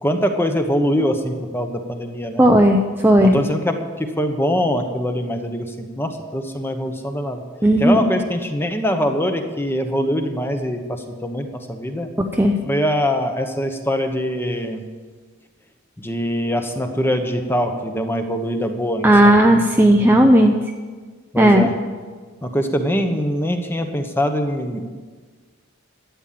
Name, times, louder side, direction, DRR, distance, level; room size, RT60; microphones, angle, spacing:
voice 1, 0.0-2.4 3.2-7.4 7.8-12.1 12.6-14.8 16.0-19.4 21.3-21.7 22.4-24.8, equal, 10° left, 5 dB, 1.1 m, -23 dB
voice 2, 2.4-3.4 7.6-8.0 12.2-12.5 19.0-20.5 21.4-21.7, right 1 dB, 10° right, 2 dB, 0.6 m, -14 dB
12.5 x 9.0 x 7.6 m, 1.5 s
head